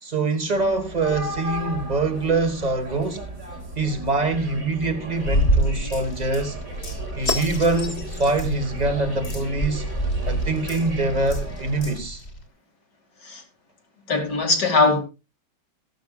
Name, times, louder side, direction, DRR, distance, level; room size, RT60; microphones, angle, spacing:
voice 1, 0.0-3.2 3.7-6.6 7.2-9.9 10.3-12.2, right 3 dB, 25° right, 1.7 m, -24 dB
sound 1, 0.5-12.0, right 1 dB, 50° right, 3.7 m, -36 dB
sound 2, 5.2-12.4, right 1 dB, 40° left, 2.1 m, -27 dB
voice 2, 14.1-15.0, left 3 dB, 70° left, 3.0 m, -20 dB
15.0 x 12.0 x 2.4 m
omnidirectional pair, 1.8 m